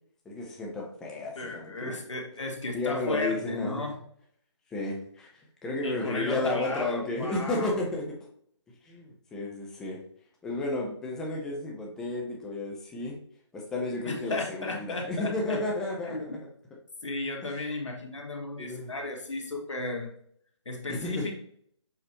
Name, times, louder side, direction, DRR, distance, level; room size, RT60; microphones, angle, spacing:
voice 1, 0.3-2.0 2.7-3.9 4.7-5.3 5.6-8.0 8.8-10.0 10.4-13.2 13.5-16.3 17.4-17.5 18.6-18.9 20.9-21.3, left 2 dB, 5° left, -1 dB, 0.6 m, -32 dB
voice 2, 1.4-4.0 5.8-7.8 14.0-15.6 16.0-16.4 17.0-20.1 20.7-21.3, left 3 dB, 85° left, 2 dB, 1.9 m, -34 dB
6.8 x 4.7 x 2.9 m, 0.65 s
hypercardioid pair, 165°, 15 cm